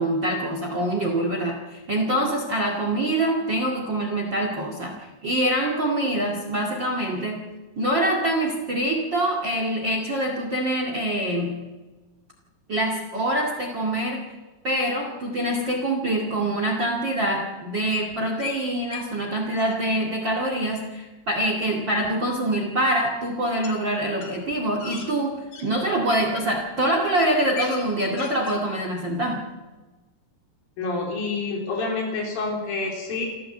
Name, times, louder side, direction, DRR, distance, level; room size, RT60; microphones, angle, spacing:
voice 1, 0.0-7.5 7.8-11.6 12.7-14.4 14.6-29.5, right 1 dB, 35° right, 2 dB, 2.4 m, -25 dB
sound 1, 17.9-18.6 18.9-19.1 19.4-19.8 22.0-22.1 23.6-23.8 24.1-25.7 26.4-26.6 27.0-27.1 27.3-27.8 28.1-28.6, left 6 dB, 60° left, 3.8 m, -38 dB
voice 2, 30.8-33.3, left 3 dB, 75° left, -1 dB, 5.4 m, -28 dB
27.5 x 14.0 x 7.9 m, 1.2 s
omnidirectional pair, 4.1 m